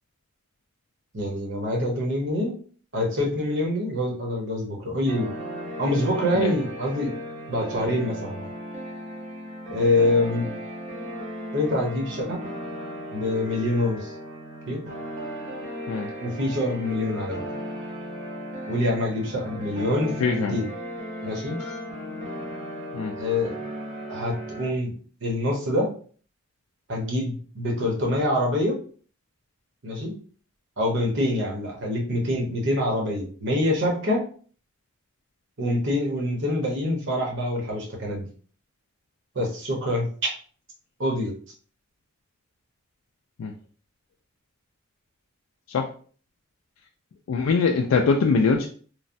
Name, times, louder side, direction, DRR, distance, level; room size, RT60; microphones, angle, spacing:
voice 1, 1.1-2.5 2.9-5.3 5.8-7.1 7.5-8.5 9.7-10.5 11.5-12.4 13.1-14.1 14.7-14.8 16.2-17.4 18.7-20.7 21.2-21.6 23.2-23.5 24.1-24.9 25.2-25.9 26.9-28.8 29.8-30.1 30.8-34.3 35.6-38.2 39.3-40.1 41.0-41.3, left 1 dB, 60° right, 0 dB, 0.9 m, -25 dB
sound 1, 5.1-24.7, equal, 35° right, 0.7 m, -36 dB
voice 2, 20.2-20.6 21.6-21.8 22.9-23.1 43.4-43.5 45.7-45.9 47.3-48.7, left 4 dB, 80° left, 2 dB, 0.3 m, -22 dB
3.1 x 2.1 x 2.5 m, 0.43 s
head